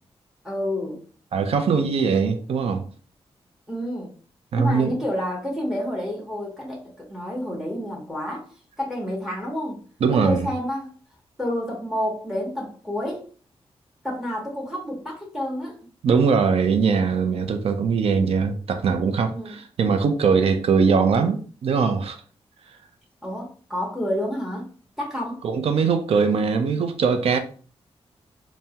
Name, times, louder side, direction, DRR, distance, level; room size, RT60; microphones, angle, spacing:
voice 1, 0.4-1.0 3.7-4.1 4.5-8.5 8.8-9.8 10.1-10.9 11.4-13.3 14.0-15.8 19.3-19.5 23.2-24.7 25.0-25.4, left 1 dB, 5° right, 0.8 m, -29 dB
voice 2, 1.3-2.8 4.5-5.0 10.0-10.5 16.0-22.2 25.4-27.4, right 5 dB, 70° right, 0.5 m, -21 dB
3.4 x 2.0 x 2.8 m
wide cardioid pair, 110°, 10 cm